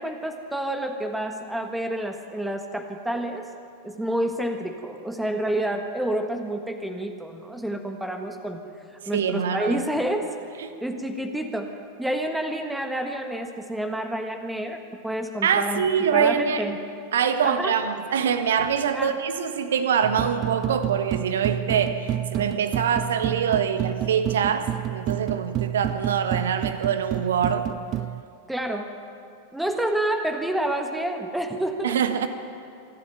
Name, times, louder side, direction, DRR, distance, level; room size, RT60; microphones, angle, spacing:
voice 1, 0.0-3.5 3.8-8.6 8.9-10.4 10.8-15.8 16.1-16.8 17.4-17.7 18.9-19.2 28.5-28.9 29.5-32.0, right 1 dB, 5° right, 5 dB, 1.6 m, -29 dB
voice 2, 9.1-9.8 10.6-10.7 15.4-16.6 17.1-27.7 31.8-32.3, right 7 dB, 60° right, 9 dB, 1.5 m, -24 dB
sound 1, 20.0-28.2, right 12 dB, 35° right, 0.4 m, -29 dB
26.0 x 12.0 x 9.2 m, 2.5 s
figure-of-eight pair, 90°, 0 cm